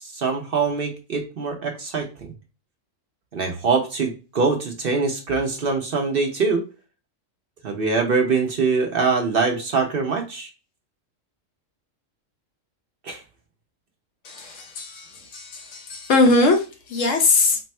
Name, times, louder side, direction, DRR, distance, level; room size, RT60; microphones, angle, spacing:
voice 1, 0.0-2.3 3.3-6.7 7.6-10.5 13.0-13.2, right 4 dB, 50° right, 0.9 m, -23 dB
voice 2, 14.2-17.6, left 3 dB, 75° left, 1.2 m, -21 dB
3.4 x 2.1 x 4.3 m
omnidirectional pair, 1.3 m